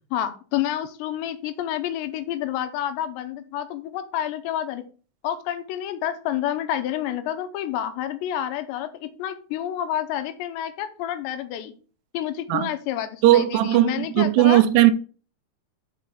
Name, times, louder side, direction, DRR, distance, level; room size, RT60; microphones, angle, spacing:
voice 1, 0.1-4.8 5.2-11.7 12.1-14.6, left 11 dB, 90° left, 3.0 m, -29 dB
voice 2, 13.2-14.9, right 14 dB, 85° right, 2.5 m, -17 dB
6.0 x 5.1 x 5.6 m
omnidirectional pair, 4.9 m